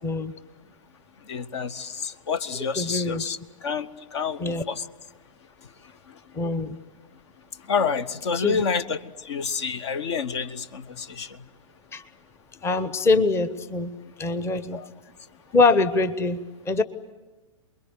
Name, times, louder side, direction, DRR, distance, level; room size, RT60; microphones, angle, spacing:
voice 1, 0.0-0.3 2.8-3.3 4.4-4.6 6.3-6.8 8.3-8.6 11.9-12.0 12.6-14.8 15.5-16.8, left 3 dB, 15° left, 13 dB, 1.0 m, -24 dB
voice 2, 1.2-4.9 6.1-6.2 7.7-11.4 14.7-14.9, left 5 dB, 55° left, 15 dB, 1.1 m, -29 dB
28.5 x 22.0 x 8.2 m, 1.2 s
figure-of-eight pair, 110°, 18 cm